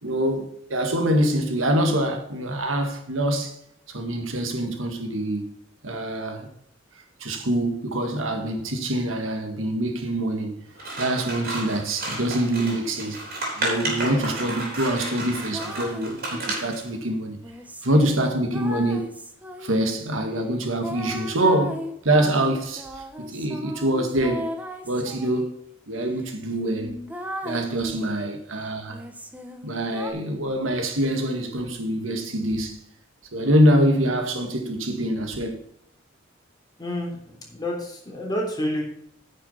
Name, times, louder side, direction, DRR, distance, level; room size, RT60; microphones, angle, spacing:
voice 1, 0.0-3.6 3.9-5.5 5.8-6.5 7.2-10.6 11.0-13.2 13.6-17.4 17.8-19.1 19.6-24.5 24.8-25.5 25.9-27.0 27.4-29.1 29.6-32.8 33.3-35.6, right 1 dB, 85° right, 1.9 m, -25 dB
Scissors, 10.8-16.9, right 2 dB, 50° right, 4.0 m, -32 dB
sound 1, 15.0-16.7 17.4-20.0 20.8-25.5 26.1-26.2 26.5-28.3 28.9-30.1, equal, 10° right, 1.1 m, -37 dB
voice 2, 36.8-38.8, left 1 dB, 20° left, 3.4 m, -29 dB
9.8 x 6.4 x 5.6 m
head